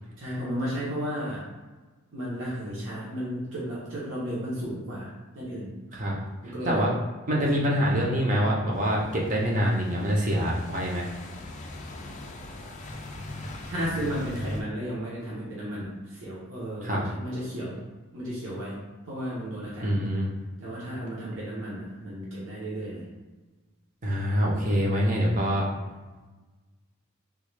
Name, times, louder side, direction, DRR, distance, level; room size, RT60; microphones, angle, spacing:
voice 1, 0.2-1.4 2.1-5.1 5.3-5.7 6.4-6.8 7.5-7.7 13.3-17.8 18.1-18.8 19.0-20.0 20.6-23.0, equal, 65° right, -7 dB, 0.9 m, -34 dB
voice 2, 7.3-11.1 16.8-17.0 19.8-20.3 24.0-25.7, equal, 35° right, -3 dB, 0.7 m, -25 dB
sound 1, 8.7-14.6, left 1 dB, 35° left, 0.3 m, -40 dB
3.6 x 2.3 x 3.3 m, 1.3 s
head